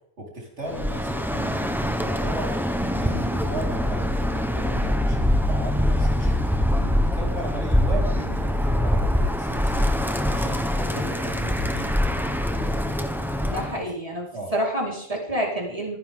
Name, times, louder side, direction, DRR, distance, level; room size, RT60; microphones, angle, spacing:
voice 1, 0.2-6.4 6.7-9.9 10.2-12.0 12.3-12.8 14.3-14.5, right 1 dB, 90° right, -2 dB, 4.8 m, -36 dB
Bird, 0.7-13.8, left 1 dB, ahead, 1.1 m, -24 dB
voice 2, 13.4-14.2 14.5-16.0, equal, 30° right, -3 dB, 4.8 m, -28 dB
28.5 x 10.5 x 3.8 m, 0.65 s
omnidirectional pair, 1.1 m